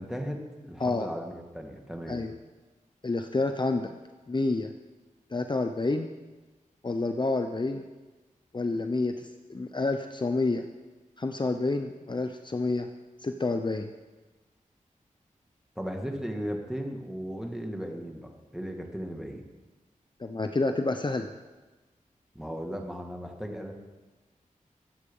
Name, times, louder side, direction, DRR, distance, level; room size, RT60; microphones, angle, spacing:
voice 1, 0.0-2.2 15.8-19.4 22.3-23.7, equal, 5° right, 2 dB, 2.2 m, -36 dB
voice 2, 3.0-3.9 4.3-4.7 5.3-6.1 6.8-7.8 8.5-10.6 11.2-12.9 13.2-13.9 20.2-21.3, left 3 dB, 35° left, 6 dB, 0.8 m, -29 dB
22.0 x 8.1 x 5.5 m, 1.2 s
wide cardioid pair, 70°, 14 cm